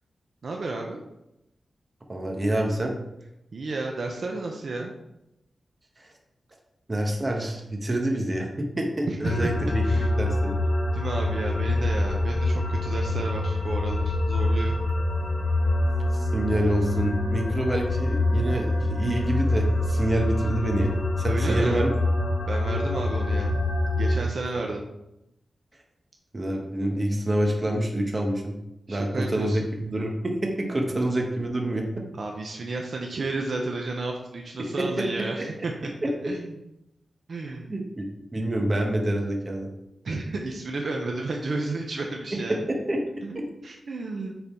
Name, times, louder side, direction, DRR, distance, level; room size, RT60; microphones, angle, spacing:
voice 1, 0.4-1.0 3.5-4.9 9.1-10.1 10.9-14.8 21.3-21.8 22.5-23.6 24.0-24.8 28.9-29.7 32.2-35.9 36.2-36.5 37.3-37.7 40.0-42.6 43.2-44.3, right 3 dB, 60° right, 1 dB, 0.8 m, -32 dB
voice 2, 2.1-2.9 6.0-6.1 6.9-10.6 16.1-21.9 26.3-28.5 28.9-31.9 34.6-34.8 35.2-35.7 36.0-36.3 37.4-38.1 38.3-39.7 42.3-43.5, right 1 dB, 30° right, 1 dB, 1.2 m, -27 dB
sound 1, 9.2-24.2, left 2 dB, 70° left, 1.6 m, -25 dB
6.9 x 4.0 x 4.4 m, 0.87 s
wide cardioid pair, 120°, 0 cm